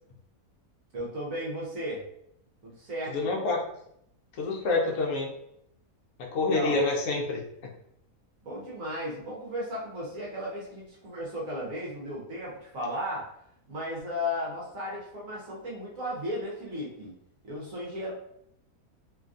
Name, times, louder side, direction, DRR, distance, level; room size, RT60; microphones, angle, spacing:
voice 1, 0.9-2.0 2.6-3.3 6.3-6.8 8.4-13.3 13.7-17.1 17.4-18.1, left 1 dB, 65° right, -4 dB, 1.3 m, -35 dB
voice 2, 3.1-3.6 4.4-5.3 6.2-7.4, left 3 dB, 65° left, -1 dB, 1.0 m, -27 dB
3.2 x 2.3 x 2.5 m, 0.73 s
omnidirectional pair, 1.6 m